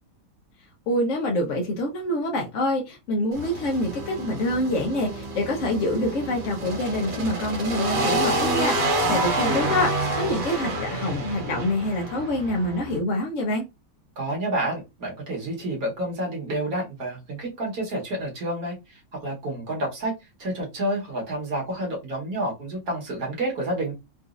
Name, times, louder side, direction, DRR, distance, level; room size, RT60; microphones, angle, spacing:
voice 1, 0.9-13.6, left 1 dB, 60° left, 0.8 m, -26 dB
sound 1, 3.3-13.0, right 1 dB, 70° right, 1.7 m, -28 dB
voice 2, 14.2-20.1 20.4-23.9, right 1 dB, 55° right, 1.5 m, -29 dB
3.9 x 2.4 x 2.4 m
omnidirectional pair, 2.1 m